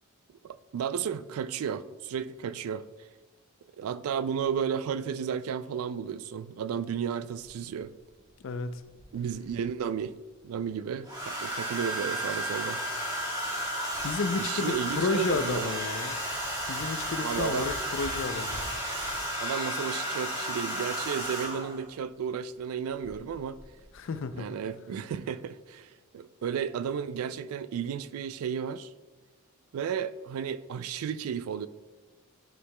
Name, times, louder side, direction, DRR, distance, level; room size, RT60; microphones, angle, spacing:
voice 1, 0.4-2.8 3.8-7.9 9.1-10.2 10.4-12.8 14.4-15.8 17.2-17.7 19.4-23.6 24.4-28.9 29.7-31.7, right 7 dB, 80° right, 0.3 m, -33 dB
voice 2, 8.4-8.8 14.0-16.2 16.7-18.6 23.9-24.5, left 4 dB, 60° left, 0.4 m, -31 dB
Domestic sounds home sounds, 9.0-9.6 11.1-21.8 23.0-23.3 23.6-23.9, equal, 20° right, 1.3 m, -33 dB
10.0 x 4.7 x 2.2 m
head